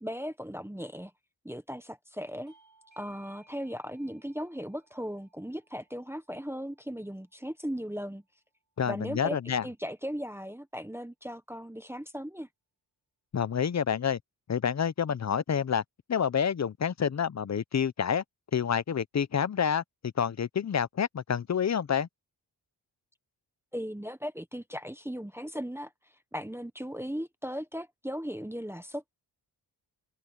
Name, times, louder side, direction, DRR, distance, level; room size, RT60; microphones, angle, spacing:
voice 1, 0.0-1.1 1.4-2.5 3.0-8.2 8.9-9.4 9.6-12.5 23.7-25.9 26.3-29.1, equal, 5° right, 1.1 m, -37 dB
Bell / Doorbell, 2.5-7.7, right 3 dB, 45° right, 6.3 m, -64 dB
voice 2, 8.8-9.6 13.3-14.2 14.5-15.8 16.1-18.2 18.5-22.1, left 7 dB, 40° left, 0.6 m, -28 dB
open air
wide cardioid pair, 100°, 43 cm